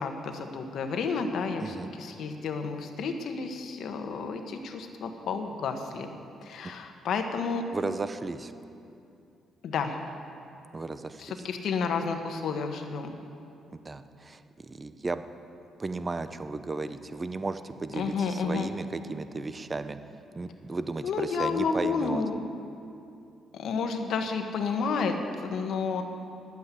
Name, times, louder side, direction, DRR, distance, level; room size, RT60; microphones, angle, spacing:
voice 1, 0.0-6.1 6.4-7.7 9.6-10.0 11.2-13.2 17.9-18.7 21.0-22.4 23.5-26.0, left 5 dB, 70° left, 6 dB, 1.2 m, -31 dB
voice 2, 1.6-1.9 7.7-8.5 10.7-11.2 13.7-15.2 15.8-20.0 20.3-22.2, right 3 dB, 25° right, 11 dB, 0.7 m, -34 dB
11.5 x 8.3 x 8.4 m, 2.7 s
cardioid pair, 90°, 0 cm